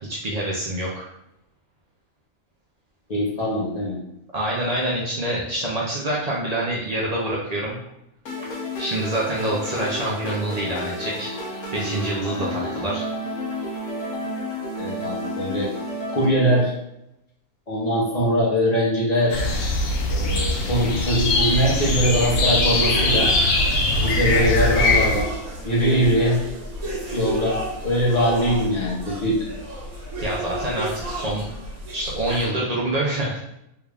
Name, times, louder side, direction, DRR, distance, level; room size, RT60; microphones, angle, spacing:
voice 1, 0.1-1.0 4.3-7.8 8.8-11.3 11.7-13.0 30.2-31.5 31.9-33.4, right 1 dB, 85° right, -5 dB, 0.3 m, -26 dB
voice 2, 3.1-4.0 12.6-12.7 14.8-15.7 16.1-16.7 17.7-19.4 20.1-23.3 24.0-25.3 25.6-26.4 27.1-29.5, equal, 35° left, -4 dB, 0.7 m, -22 dB
sound 1, 8.3-16.3, left 1 dB, 60° left, 1.1 m, -31 dB
sound 2, 19.3-25.2, left 2 dB, 85° left, 1.2 m, -21 dB
sound 3, 22.8-32.5, right 1 dB, 70° right, 1.4 m, -32 dB
3.4 x 2.4 x 3.3 m, 0.83 s
omnidirectional pair, 1.6 m